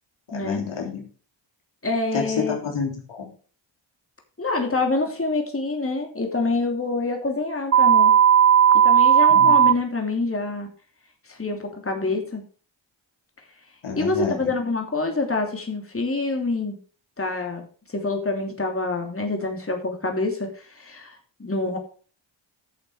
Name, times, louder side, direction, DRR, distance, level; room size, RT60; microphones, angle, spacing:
voice 1, 0.3-1.0 2.1-3.3 9.3-9.6 13.8-14.5, left 5 dB, 85° left, 0 dB, 3.5 m, -29 dB
voice 2, 1.8-2.6 4.4-8.2 8.8-10.7 11.3-12.4 14.0-16.8 17.2-17.6 17.9-21.8, left 3 dB, 30° left, 2 dB, 3.0 m, -26 dB
sound 1, 7.7-9.7, right 9 dB, 35° right, 0.5 m, -15 dB
11.0 x 6.8 x 5.0 m, 0.41 s
cardioid pair, 60°, 48 cm